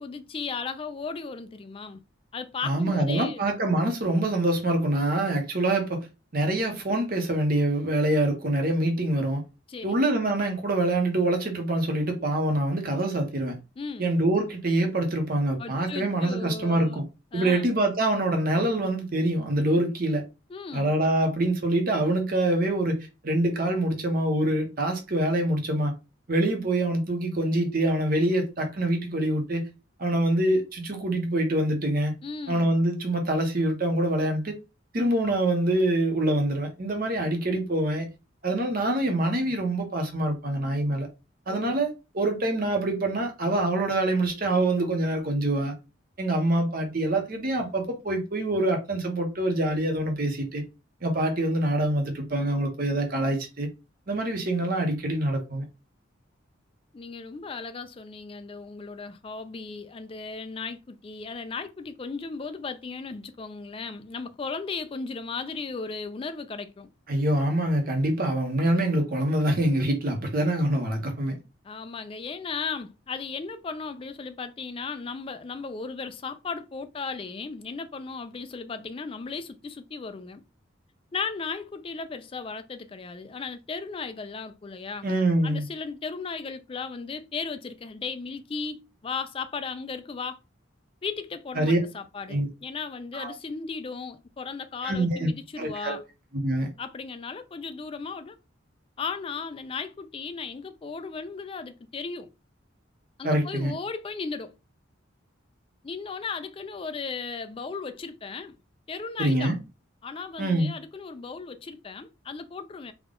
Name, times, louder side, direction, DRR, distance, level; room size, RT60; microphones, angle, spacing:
voice 1, 0.0-2.0 2.3-3.4 9.7-10.0 13.8-14.1 15.6-17.0 17.3-17.6 20.5-20.9 32.2-32.7 41.5-41.8 56.9-66.9 71.6-80.4 81.1-85.1 85.4-90.4 91.0-96.0 96.8-98.4 99.0-102.3 103.2-104.5 105.8-108.6 108.9-109.5 110.0-112.9, left 4 dB, 25° left, 0.3 m, -36 dB
voice 2, 2.6-6.1 6.3-9.4 9.8-13.6 14.0-17.0 17.3-20.2 20.7-25.9 26.3-29.7 30.0-32.1 32.5-34.6 34.9-38.1 38.4-41.1 41.5-45.7 46.2-50.6 51.0-53.7 54.1-55.6 67.1-71.4 85.0-85.6 91.6-91.8 92.3-92.5 93.1-93.3 94.8-95.3 95.6-96.0 96.4-96.7 103.2-103.7 109.2-109.6 110.4-110.7, right 1 dB, 45° right, 0.9 m, -25 dB
3.5 x 2.3 x 3.7 m
head